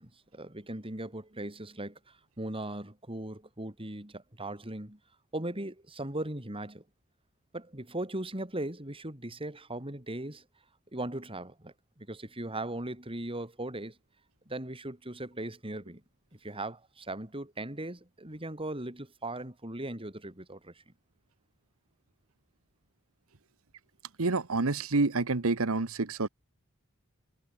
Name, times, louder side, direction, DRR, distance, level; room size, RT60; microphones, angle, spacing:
voice 1, 0.0-5.0 5.3-6.8 7.5-10.4 10.9-14.0 14.5-16.0 16.3-20.8, right 1 dB, 25° right, 4.6 m, -38 dB
voice 2, 24.2-26.3, right 3 dB, 70° right, 1.2 m, -28 dB
head